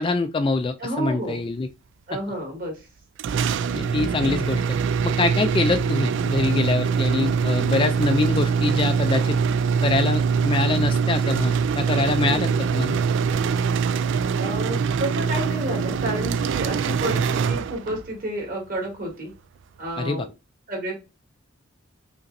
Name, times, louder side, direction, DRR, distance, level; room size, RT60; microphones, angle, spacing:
voice 1, 0.0-1.7 3.7-4.8 5.0-9.4 9.8-13.0 20.0-20.3, left 3 dB, 25° left, 0.3 m, -24 dB
voice 2, 0.8-1.4 2.1-2.8 12.3-12.6 14.4-19.3 19.8-20.3 20.7-21.0, right 1 dB, 45° right, 2.1 m, -30 dB
sound 1, 3.2-18.1, right 6 dB, 60° right, 0.3 m, -23 dB
5.0 x 3.0 x 2.6 m
head